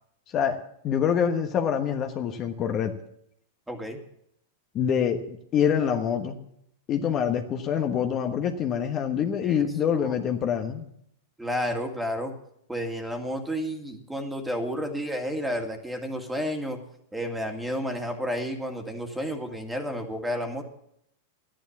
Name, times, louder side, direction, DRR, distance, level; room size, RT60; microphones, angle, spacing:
voice 1, 0.3-2.9 4.7-6.4 6.9-10.9, left 8 dB, 35° left, 6 dB, 1.2 m, -26 dB
voice 2, 3.7-4.0 9.4-9.6 9.9-10.1 11.4-12.3 12.7-16.8 17.1-20.6, equal, 5° right, 5 dB, 2.1 m, -31 dB
12.0 x 10.0 x 7.2 m, 0.73 s
hypercardioid pair, 110°, 0 cm